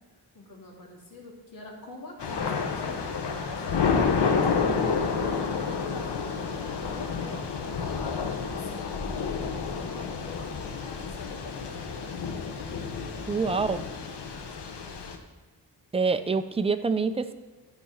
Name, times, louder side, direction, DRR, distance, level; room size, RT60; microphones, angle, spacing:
voice 1, 0.3-3.9 4.3-8.1 8.4-12.2 13.0-14.7, left 2 dB, 55° left, -3 dB, 2.4 m, -45 dB
Thunder / Rain, 2.2-15.2, left 5 dB, 80° left, 1.0 m, -30 dB
voice 2, 13.3-13.8 15.9-17.3, right 4 dB, 15° right, 10 dB, 0.4 m, -26 dB
12.0 x 4.8 x 5.4 m, 1.3 s
wide cardioid pair, 135°, 41 cm